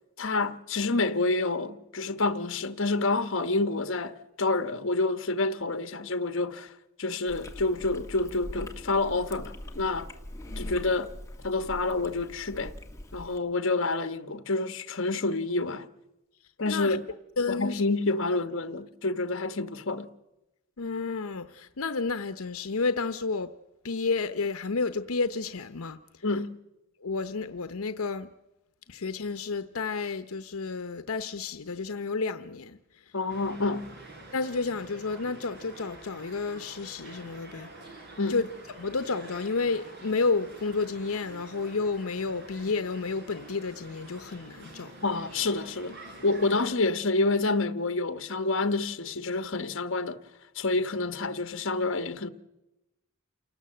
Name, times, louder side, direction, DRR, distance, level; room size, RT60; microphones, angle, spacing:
voice 1, 0.2-6.7 7.0-10.1 10.6-11.1 11.4-12.7 13.1-15.9 16.6-17.1 17.5-20.1 26.2-26.6 33.1-33.9 38.2-38.4 45.0-50.2 50.5-52.3, left 3 dB, 60° left, 1.2 m, -28 dB
Chewing mastication, 7.3-13.4, left 1 dB, 15° left, 1.7 m, -42 dB
voice 2, 10.5-10.9 16.7-17.0 17.4-17.8 20.8-23.5 23.8-26.0 27.0-28.3 28.9-32.8 34.3-37.7 38.3-38.5 38.8-44.9, left 4 dB, 85° left, 0.8 m, -31 dB
sound 1, 33.3-46.7, right 2 dB, 50° right, 4.2 m, -47 dB
28.5 x 18.5 x 7.8 m
head